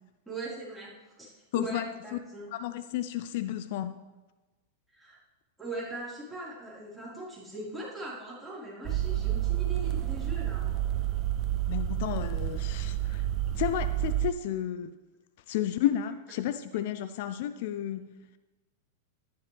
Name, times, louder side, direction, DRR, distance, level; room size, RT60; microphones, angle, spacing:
voice 1, 0.3-2.5 4.9-5.2 5.6-10.8, right 2 dB, 5° right, -8 dB, 4.4 m, -40 dB
voice 2, 1.5-1.9 2.1-2.2 2.5-4.0 11.7-13.3 13.6-15.0 15.5-18.1, left 11 dB, 60° left, 12 dB, 0.5 m, -32 dB
sound 1, 8.8-14.3, right 13 dB, 35° right, 0.5 m, -29 dB
12.5 x 11.0 x 3.4 m, 1.2 s
hypercardioid pair, 130°, 0 cm